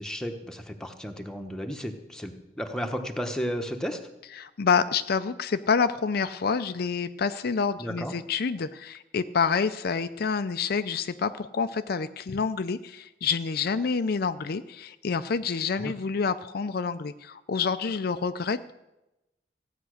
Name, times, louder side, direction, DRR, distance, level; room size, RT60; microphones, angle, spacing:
voice 1, 0.0-4.0 7.8-8.2 15.8-15.9, equal, 5° left, 4 dB, 1.1 m, -33 dB
voice 2, 4.4-18.7, left 5 dB, 55° left, 11 dB, 0.5 m, -28 dB
15.5 x 9.1 x 6.5 m, 0.95 s
head